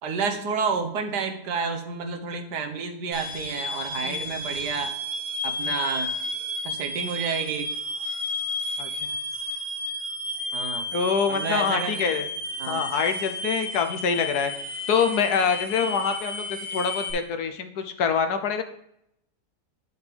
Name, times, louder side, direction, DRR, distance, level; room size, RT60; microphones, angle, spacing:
voice 1, 0.0-4.9 5.4-6.1 6.6-7.7 10.5-10.8 11.3-12.0 12.6-12.9, right 5 dB, 80° right, 5 dB, 1.6 m, -30 dB
sound 1, 3.1-17.1, left 1 dB, 15° right, 2.7 m, -32 dB
voice 2, 10.9-12.3 12.7-14.5 14.9-18.6, left 6 dB, 70° left, 8 dB, 1.3 m, -25 dB
9.6 x 7.2 x 3.4 m, 0.77 s
omnidirectional pair, 1.8 m